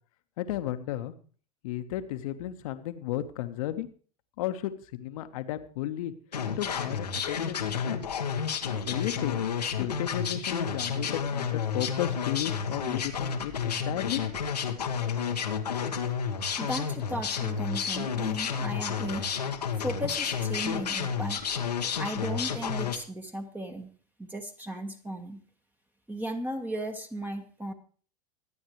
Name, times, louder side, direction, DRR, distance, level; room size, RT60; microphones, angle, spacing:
voice 1, 0.4-1.1 1.6-3.9 4.4-6.1 6.6-8.1 8.8-9.5 9.7-14.6, left 12 dB, 60° left, 10 dB, 1.4 m, -34 dB
sound 1, 6.3-23.0, left 7 dB, 85° left, 1.4 m, -31 dB
voice 2, 16.6-19.3 19.7-21.6 22.0-23.9 24.2-25.4 26.1-27.7, right 1 dB, 10° right, 5 dB, 1.5 m, -36 dB
24.5 x 8.8 x 3.2 m, 0.41 s
hypercardioid pair, 90°, 20 cm